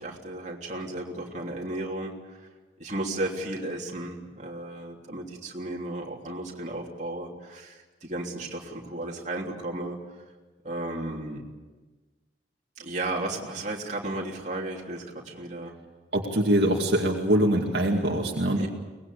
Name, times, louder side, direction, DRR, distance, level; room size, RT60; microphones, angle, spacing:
voice 1, 0.0-2.5 2.8-10.0 10.6-11.4 12.8-15.8 18.6-18.7, right 2 dB, 40° right, -1 dB, 3.3 m, -34 dB
voice 2, 16.1-18.7, right 1 dB, 60° right, -1 dB, 2.4 m, -23 dB
24.0 x 20.5 x 8.5 m, 1.3 s
head